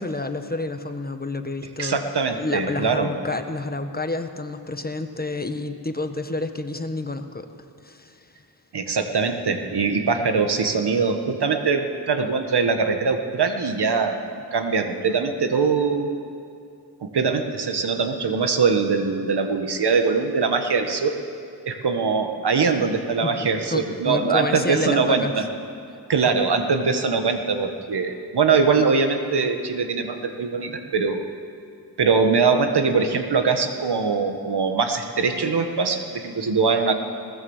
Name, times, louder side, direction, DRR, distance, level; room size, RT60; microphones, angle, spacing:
voice 1, 0.0-2.0 2.3-7.5 7.8-8.2 23.2-23.3 23.7-25.3, left 2 dB, 25° left, 7 dB, 1.3 m, -29 dB
voice 2, 1.8-3.1 8.7-14.2 14.5-16.2 17.0-21.2 21.7-25.5 26.1-31.3 32.0-36.9, right 5 dB, 80° right, 6 dB, 1.8 m, -22 dB
21.0 x 19.0 x 7.4 m, 2.4 s
wide cardioid pair, 80°, 40 cm